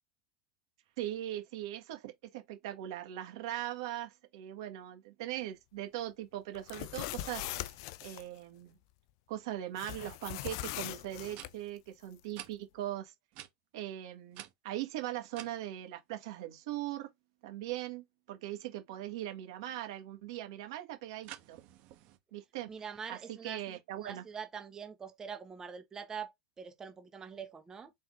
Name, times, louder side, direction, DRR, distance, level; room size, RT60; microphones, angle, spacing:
voice 1, 1.0-7.7 8.0-8.8 9.3-13.1 13.7-17.1 17.4-21.6 22.3-22.7 23.1-24.2, right 13 dB, 70° right, 1.4 m, -40 dB
sound 1, 6.6-8.2 9.8-11.5, left 15 dB, 65° left, 0.4 m, -40 dB
sound 2, 11.3-11.5 12.3-12.5 13.3-13.5 14.3-15.5 21.2-22.2, right 13 dB, 55° right, 1.0 m, -48 dB
voice 2, 22.7-23.6 24.0-27.9, right 6 dB, 20° right, 1.0 m, -44 dB
4.2 x 3.6 x 2.5 m
hypercardioid pair, 110°, 3 cm